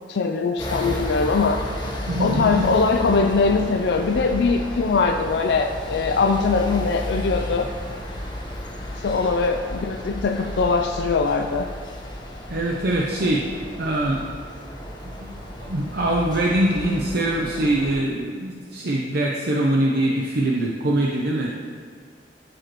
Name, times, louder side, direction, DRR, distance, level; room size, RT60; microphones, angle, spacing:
voice 1, 0.1-1.6 2.2-7.7 9.0-11.7, left 4 dB, 70° left, 5 dB, 0.4 m, -21 dB
sound 1, 0.6-18.0, equal, 25° left, 1.2 m, -33 dB
voice 2, 2.1-2.6 12.5-13.4 13.8-14.2 15.2-15.3 15.6-21.5, right 1 dB, 60° right, -2 dB, 0.7 m, -23 dB
13.0 x 5.1 x 3.0 m, 2.1 s
head